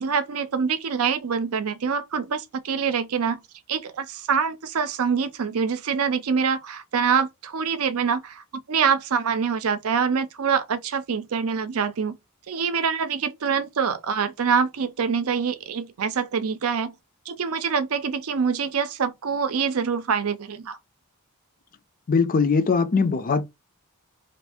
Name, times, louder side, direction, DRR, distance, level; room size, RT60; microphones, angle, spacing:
voice 1, 0.0-3.4 3.7-12.2 12.5-17.0 17.3-20.8, right 6 dB, 75° right, 0.5 m, -25 dB
voice 2, 22.1-23.4, left 5 dB, 40° left, 0.5 m, -21 dB
2.7 x 2.6 x 3.4 m
head